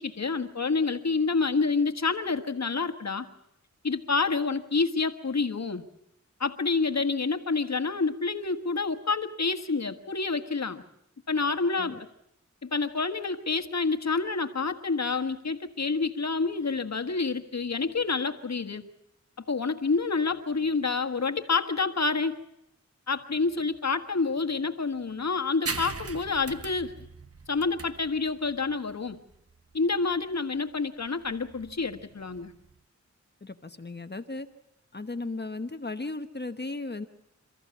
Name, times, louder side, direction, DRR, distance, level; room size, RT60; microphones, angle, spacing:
voice 1, 0.0-3.3 3.8-5.8 6.4-10.8 11.3-12.0 12.6-18.8 19.5-22.3 23.1-26.9 27.5-29.2 29.7-32.5, left 4 dB, 65° left, 7 dB, 1.6 m, -28 dB
sound 1, 25.7-32.8, right 4 dB, 50° right, 1.2 m, -41 dB
voice 2, 33.4-34.5 34.9-37.1, left 2 dB, 35° left, 8 dB, 1.1 m, -36 dB
28.5 x 14.0 x 8.4 m, 0.80 s
wide cardioid pair, 60°, 29 cm